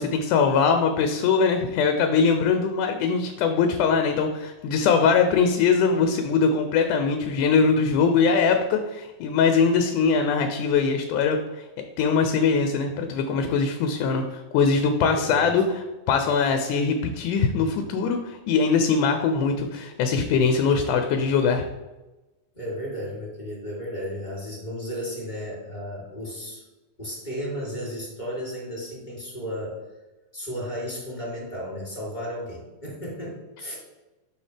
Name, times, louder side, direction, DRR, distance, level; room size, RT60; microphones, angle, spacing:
voice 1, 0.0-11.6 12.0-15.6 16.1-21.7, left 5 dB, 90° left, 6 dB, 2.1 m, -22 dB
voice 2, 15.0-15.5 22.5-26.6 27.0-29.8 30.3-33.7, equal, 15° left, -5 dB, 2.3 m, -34 dB
7.0 x 5.8 x 3.3 m, 1.1 s
omnidirectional pair, 3.5 m